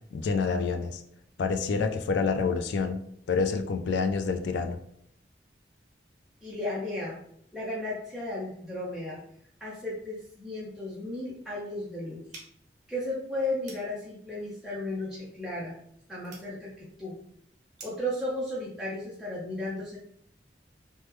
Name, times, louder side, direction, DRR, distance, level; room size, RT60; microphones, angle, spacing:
voice 1, 0.1-1.0 1.4-3.0 3.3-4.8, left 4 dB, 75° left, 6 dB, 0.3 m, -27 dB
voice 2, 6.4-7.2 7.5-9.2 9.6-12.2 12.9-15.7 16.1-17.1 17.8-20.0, left 1 dB, ahead, -8 dB, 0.5 m, -34 dB
sound 1, 12.3-18.2, right 3 dB, 40° right, 0.7 m, -53 dB
3.0 x 2.1 x 3.3 m, 0.70 s
head